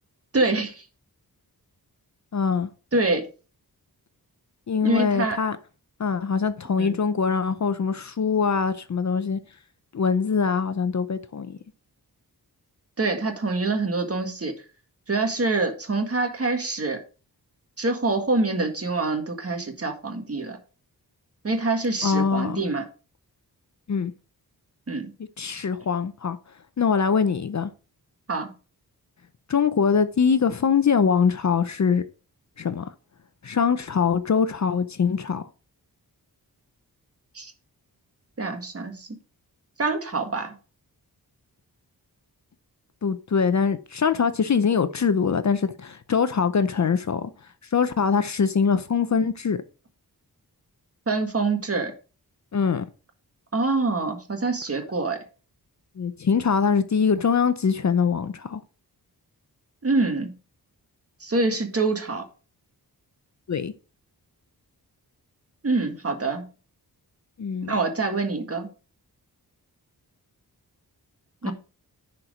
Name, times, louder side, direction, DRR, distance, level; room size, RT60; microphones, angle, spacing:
voice 1, 0.3-0.8 2.9-3.3 4.8-5.4 6.8-7.0 13.0-14.5 15.1-17.0 17.8-20.6 21.4-22.8 24.9-25.1 28.3-28.5 37.3-37.5 38.4-39.1 39.8-40.5 51.1-51.9 53.5-55.2 59.8-60.3 61.2-62.2 65.6-66.4 67.7-68.7 71.4-71.5, right 3 dB, 35° right, 1.7 m, -25 dB
voice 2, 2.3-2.7 4.7-5.6 6.0-9.4 9.9-11.6 22.0-22.6 23.9-24.1 25.4-26.4 26.8-27.7 29.5-32.0 32.6-32.9 33.4-35.5 43.0-47.3 47.7-49.6 52.5-52.9 56.0-58.6 63.5-63.7 67.4-67.7 71.4-71.5, left 6 dB, 45° left, 0.6 m, -23 dB
10.5 x 4.5 x 5.0 m
wide cardioid pair, 125°, 38 cm